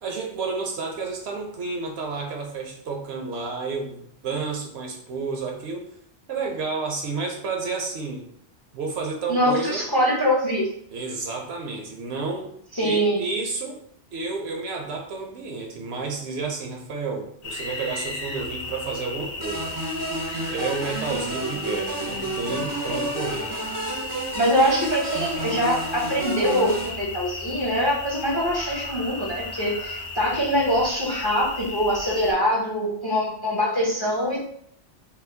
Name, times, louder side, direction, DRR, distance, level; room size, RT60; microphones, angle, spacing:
voice 1, 0.0-5.8 6.3-8.3 8.7-9.8 10.9-12.5 12.8-13.8 14.1-19.7 20.5-23.5, right 4 dB, 70° right, 1 dB, 0.9 m, -31 dB
voice 2, 9.3-10.7 12.7-13.2 24.3-34.4, equal, 25° left, -4 dB, 0.6 m, -23 dB
sound 1, 17.4-32.3, left 3 dB, 75° left, 0.9 m, -35 dB
sound 2, 17.5-18.5 20.1-21.1 22.4-24.0 25.1-26.8 28.0-30.1, left 1 dB, 50° left, 1.5 m, -42 dB
sound 3, 19.4-26.9, right 2 dB, 30° right, 0.3 m, -31 dB
4.2 x 2.0 x 2.6 m, 0.67 s
omnidirectional pair, 1.2 m